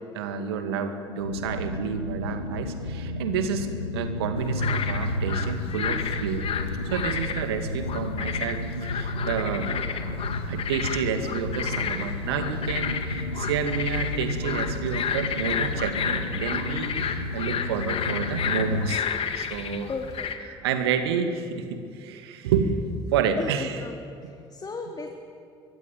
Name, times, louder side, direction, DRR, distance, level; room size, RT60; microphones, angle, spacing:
voice 1, 0.1-6.5 6.9-9.7 10.5-19.0 19.4-19.9 20.4-22.8 23.1-23.8 24.2-24.3, right 7 dB, 70° right, 7 dB, 2.3 m, -29 dB
sound 1, 1.2-19.0, left 1 dB, 90° left, 0.9 m, -32 dB
sound 2, 4.4-20.3, left 7 dB, 45° left, 2.3 m, -32 dB
voice 2, 19.9-20.3 23.4-23.9 24.2-25.1, left 4 dB, 30° left, 3 dB, 2.7 m, -34 dB
24.0 x 23.5 x 9.1 m, 2.4 s
figure-of-eight pair, 55°, 14 cm